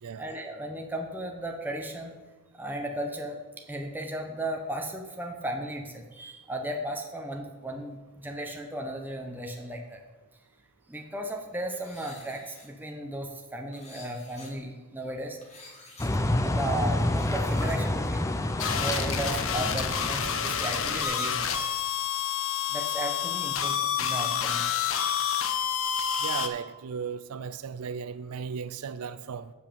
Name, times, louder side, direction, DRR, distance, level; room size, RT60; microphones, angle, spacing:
voice 1, 0.2-2.1 2.5-10.0 10.9-15.4 16.4-18.3 18.7-21.5 22.7-24.6, right 1 dB, 10° right, 0.8 m, -35 dB
sound 1, 11.7-12.7 13.7-14.5 15.4-16.1 16.9-17.8, left 3 dB, 30° left, 1.6 m, -50 dB
sound 2, 16.0-21.0, left 1 dB, 15° left, 0.4 m, -29 dB
sound 3, 18.6-26.5, left 8 dB, 60° left, 0.7 m, -29 dB
voice 2, 26.2-29.5, right 6 dB, 85° right, 0.4 m, -36 dB
8.2 x 5.3 x 6.9 m
head